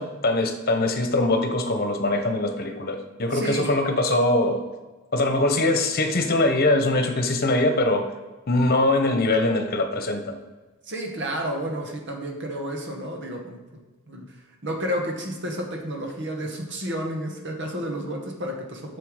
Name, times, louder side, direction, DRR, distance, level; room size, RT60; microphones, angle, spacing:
voice 1, 0.0-4.6 5.1-8.1 8.5-10.4, left 2 dB, 45° left, 6 dB, 1.1 m, -22 dB
voice 2, 3.3-3.7 10.8-13.8 14.1-14.4 14.6-19.0, equal, 55° right, 2 dB, 1.7 m, -31 dB
7.7 x 6.9 x 5.0 m, 1.2 s
head